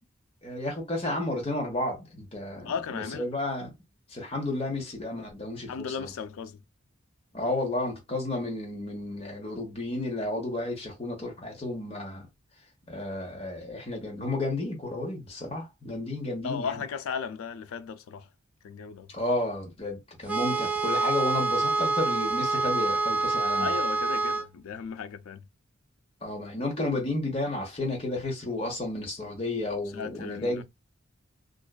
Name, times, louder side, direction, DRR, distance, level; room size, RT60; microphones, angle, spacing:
voice 1, 0.4-3.7 4.1-6.1 7.3-12.3 12.9-16.8 19.1-23.7 26.2-30.6, left 2 dB, 30° left, 0.9 m, -32 dB
voice 2, 2.6-3.3 5.7-6.6 16.4-18.3 18.6-19.1 23.6-25.4 29.9-30.6, left 6 dB, 80° left, 0.3 m, -35 dB
sound 1, 20.3-24.5, right 3 dB, 5° right, 0.4 m, -27 dB
2.5 x 2.2 x 2.3 m
head